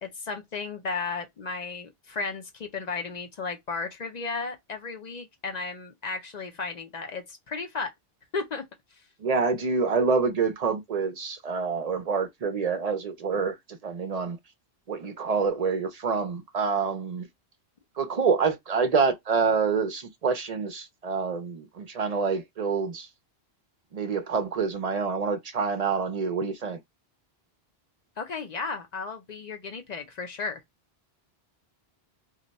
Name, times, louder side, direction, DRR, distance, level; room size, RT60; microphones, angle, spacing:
voice 1, 0.0-7.9 8.3-8.6 28.2-30.6, left 4 dB, 50° left, 0.6 m, -34 dB
voice 2, 9.2-14.4 14.9-17.3 18.0-23.1 23.9-26.8, right 5 dB, 50° right, 0.5 m, -27 dB
2.5 x 2.2 x 3.9 m
omnidirectional pair, 1.1 m